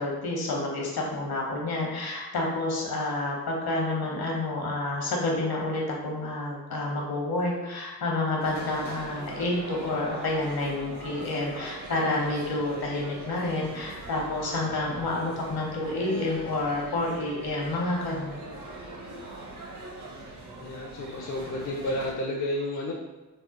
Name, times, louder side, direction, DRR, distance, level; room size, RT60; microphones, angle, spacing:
voice 1, 0.0-18.5, left 2 dB, 65° left, -1 dB, 0.9 m, -29 dB
sound 1, 8.4-22.1, right 2 dB, 50° right, 0.7 m, -41 dB
voice 2, 20.6-22.9, left 1 dB, 50° left, -1 dB, 0.5 m, -31 dB
3.1 x 2.0 x 2.9 m, 1.2 s
supercardioid pair, 50°, 39 cm